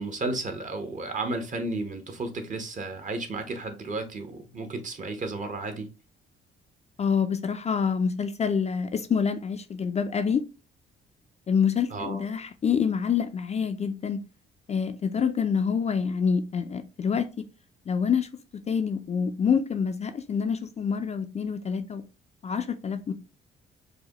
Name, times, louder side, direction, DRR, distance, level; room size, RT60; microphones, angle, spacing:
voice 1, 0.0-5.9 11.9-12.2, right 2 dB, 40° right, 0.9 m, -33 dB
voice 2, 7.0-10.4 11.5-14.2 14.7-17.4 17.9-18.3 18.7-22.0 22.4-23.1, left 6 dB, 35° left, 0.4 m, -26 dB
4.8 x 2.2 x 2.9 m
cardioid pair, 90°, 20 cm